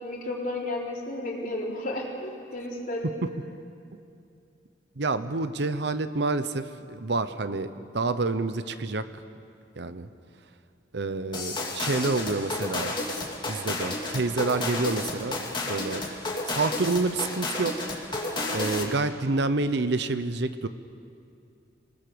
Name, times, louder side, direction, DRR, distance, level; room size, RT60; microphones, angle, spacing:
voice 1, 0.0-3.1, left 1 dB, 50° left, -2 dB, 3.9 m, -33 dB
voice 2, 5.0-9.1 9.8-10.1 10.9-12.9 13.5-16.1 16.5-17.9 18.5-20.7, right 3 dB, 70° right, 11 dB, 0.9 m, -28 dB
sound 1, 11.3-19.0, left 2 dB, 25° left, 2.7 m, -31 dB
27.0 x 19.0 x 7.0 m, 2.4 s
head